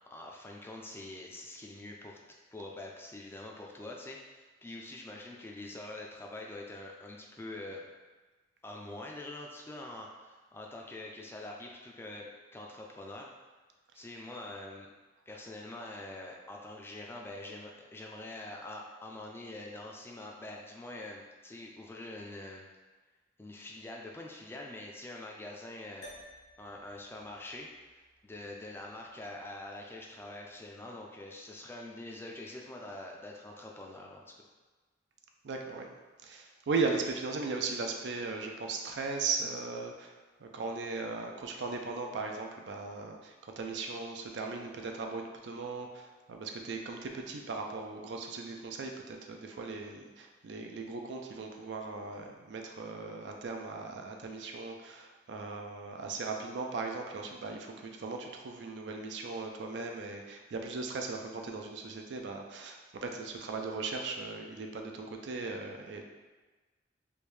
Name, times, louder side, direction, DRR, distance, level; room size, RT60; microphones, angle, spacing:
voice 1, 0.1-2.2 2.5-7.8 8.6-13.3 13.9-14.9 15.3-22.6 23.4-26.1 26.6-27.7 28.2-34.3, left 2 dB, 15° left, -1 dB, 0.3 m, -45 dB
sound 1, 26.0-30.6, left 1 dB, 75° left, 0.9 m, -57 dB
voice 2, 35.4-36.0 36.2-66.0, right 4 dB, 75° right, 3 dB, 0.4 m, -38 dB
3.4 x 2.6 x 3.2 m, 1.3 s
head